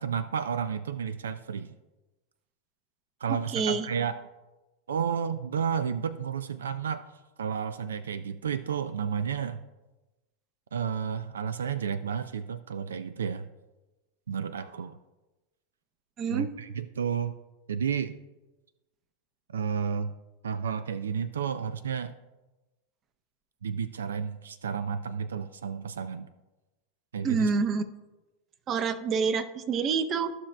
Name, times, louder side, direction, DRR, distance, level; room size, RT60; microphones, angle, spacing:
voice 1, 0.0-1.7 3.2-4.2 4.9-7.0 7.4-9.6 10.7-13.5 14.3-15.0 16.3-17.3 17.7-18.2 19.5-20.1 20.4-22.1 23.6-26.3 27.1-27.5, right 7 dB, 90° right, 13 dB, 0.3 m, -31 dB
voice 2, 3.3-3.9 16.2-16.5 27.2-27.9 28.7-30.3, right 5 dB, 35° right, 12 dB, 0.7 m, -27 dB
14.0 x 5.9 x 2.2 m, 1.1 s
hypercardioid pair, 110°, 0 cm